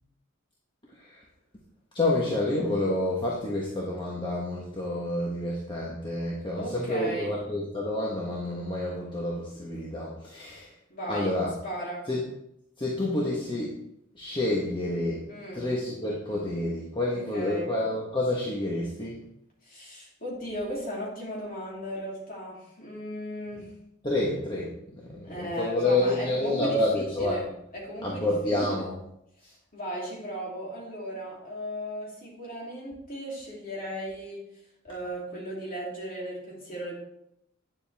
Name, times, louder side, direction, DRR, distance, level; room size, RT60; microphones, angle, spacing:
voice 1, 1.9-10.7 11.1-11.5 12.1-12.2 12.8-13.8 14.1-15.3 15.5-19.2 24.0-24.7 25.0-27.4 28.0-29.0, left 1 dB, 25° left, -4 dB, 1.3 m, -29 dB
voice 2, 6.6-7.3 10.9-11.3 11.6-12.1 15.3-15.7 17.1-17.7 19.6-23.7 25.2-27.5 27.7-28.9 29.7-34.5 34.8-36.9, equal, 40° left, -4 dB, 3.2 m, -36 dB
9.6 x 7.3 x 3.5 m, 0.78 s
head